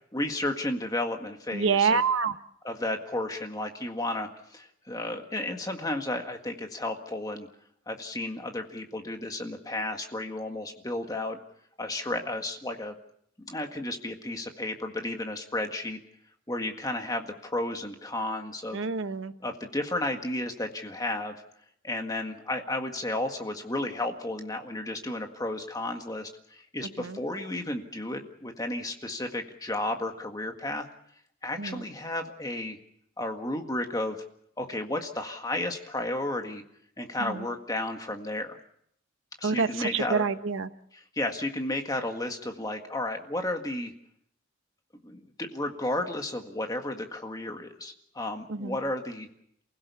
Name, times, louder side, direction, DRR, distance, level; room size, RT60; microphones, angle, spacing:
voice 1, 0.1-2.0 2.6-7.5 7.9-11.4 11.8-12.9 13.5-16.0 16.5-18.8 19.4-21.4 21.8-30.9 31.4-32.8 33.2-34.2 34.6-36.6 37.0-38.6 39.4-40.2 40.9-43.9 45.0-49.3, left 1 dB, 15° left, 4 dB, 1.8 m, -33 dB
voice 2, 1.5-2.3 18.7-19.3 27.0-27.2 31.6-31.8 37.2-37.4 39.4-40.7 48.5-48.8, right 5 dB, 65° right, 10 dB, 1.0 m, -27 dB
28.5 x 16.5 x 7.0 m, 0.71 s
head